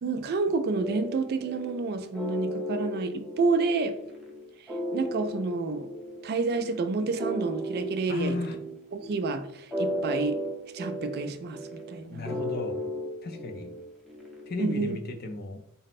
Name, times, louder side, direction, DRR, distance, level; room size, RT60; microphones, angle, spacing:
voice 1, 0.0-4.0 4.9-5.9 6.2-8.3 8.9-10.4 10.7-12.3 14.6-15.0, right 3 dB, 45° right, 0.3 m, -29 dB
sound 1, 0.8-14.6, equal, ahead, 0.7 m, -35 dB
voice 2, 8.1-8.6 12.1-12.9 13.2-13.7 14.5-15.6, left 3 dB, 45° left, 0.5 m, -34 dB
4.1 x 2.1 x 4.1 m
head